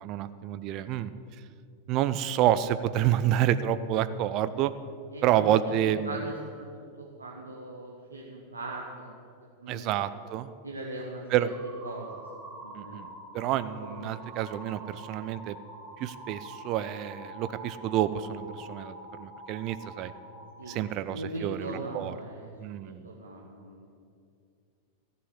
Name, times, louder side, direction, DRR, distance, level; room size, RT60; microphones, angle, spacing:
voice 1, 0.0-1.1 1.9-4.7 5.2-6.3 9.7-10.5 11.3-11.5 12.8-13.1 13.3-15.6 16.0-20.1 20.7-22.2 22.6-23.1, right 11 dB, 40° right, 14 dB, 0.5 m, -28 dB
voice 2, 5.1-9.1 9.6-9.9 10.6-11.2 11.8-12.1 12.5-13.1 13.8-14.2 20.6-23.9, right 2 dB, 80° right, -2 dB, 1.3 m, -40 dB
sound 1, 11.5-20.8, right 1 dB, 15° right, 3.7 m, -46 dB
14.0 x 7.1 x 8.1 m, 2.4 s
figure-of-eight pair, 90°, 0 cm